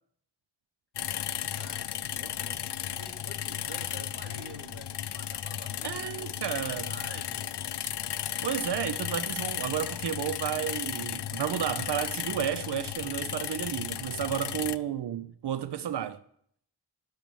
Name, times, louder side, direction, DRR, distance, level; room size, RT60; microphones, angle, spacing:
sound 1, 0.9-14.8, left 10 dB, 85° left, 0.5 m, -35 dB
voice 1, 1.3-2.6 3.0-6.3 6.7-7.5, right 1 dB, 30° right, 2.3 m, -48 dB
voice 2, 5.8-6.9 8.4-16.2, right 10 dB, 80° right, 0.5 m, -32 dB
10.5 x 7.4 x 6.9 m
wide cardioid pair, 55°, 40 cm